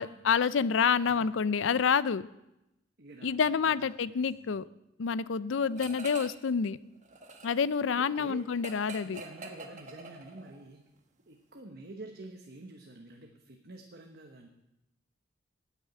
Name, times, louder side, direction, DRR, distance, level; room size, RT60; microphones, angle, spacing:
voice 1, 0.0-2.2 3.2-4.6 5.0-6.8 7.4-9.2, left 6 dB, 85° left, 17 dB, 0.5 m, -28 dB
voice 2, 3.0-3.6 4.1-4.4 5.6-5.8 8.0-8.5 9.0-10.8 11.3-14.5, right 2 dB, 55° right, 3 dB, 1.1 m, -48 dB
sound 1, 5.8-6.5 6.8-10.6, right 3 dB, 40° right, 1.3 m, -46 dB
10.0 x 8.4 x 8.9 m, 0.89 s
head